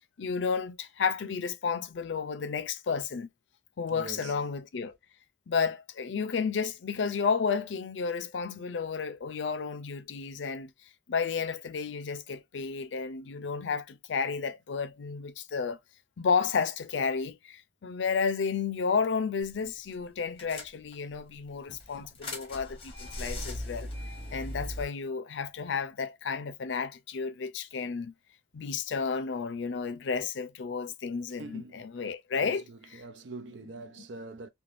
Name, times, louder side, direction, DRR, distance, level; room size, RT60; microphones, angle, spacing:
voice 1, 0.2-3.3 3.8-4.9 5.5-10.7 11.1-15.8 16.2-23.9 24.3-28.1 28.5-32.6 32.9-33.0, left 5 dB, 90° left, 0.4 m, -32 dB
voice 2, 3.9-4.4 31.4-31.9 32.3-34.5, right 3 dB, 85° right, 0.5 m, -44 dB
sound 1, 19.4-19.7 19.9-20.0 20.4-21.2 21.7-24.8, left 1 dB, 30° left, 0.9 m, -39 dB
3.3 x 2.2 x 2.5 m
head